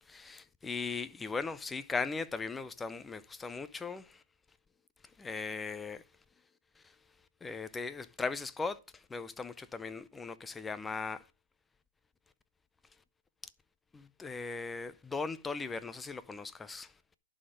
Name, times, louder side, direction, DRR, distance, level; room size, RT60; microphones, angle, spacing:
voice 1, 0.1-4.2 5.2-6.0 6.8-6.9 7.4-11.3 13.9-16.9, left 4 dB, 10° left, 0.5 m, -38 dB
11.0 x 4.2 x 6.3 m
hypercardioid pair, 150°, 0 cm